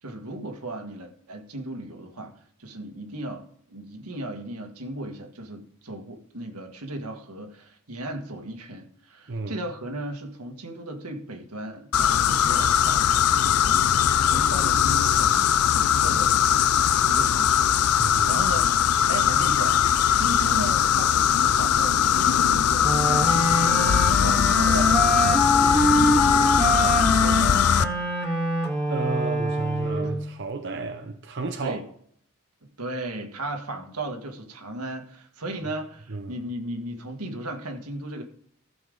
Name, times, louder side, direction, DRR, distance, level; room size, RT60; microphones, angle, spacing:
voice 1, 0.0-2.3 2.6-16.7 17.1-19.8 20.1-23.4 23.7-25.7 26.0-27.9 31.6-31.8 32.8-38.2, right 1 dB, 85° right, 1.8 m, -36 dB
voice 2, 9.3-9.6 18.0-18.6 28.9-31.8 36.1-36.4, right 3 dB, 55° right, 0.8 m, -32 dB
sound 1, 11.9-27.8, left 8 dB, 80° left, 0.5 m, -20 dB
Wind instrument woodwind instrument, 22.8-30.3, equal, ahead, 2.9 m, -24 dB
14.5 x 7.0 x 3.9 m
head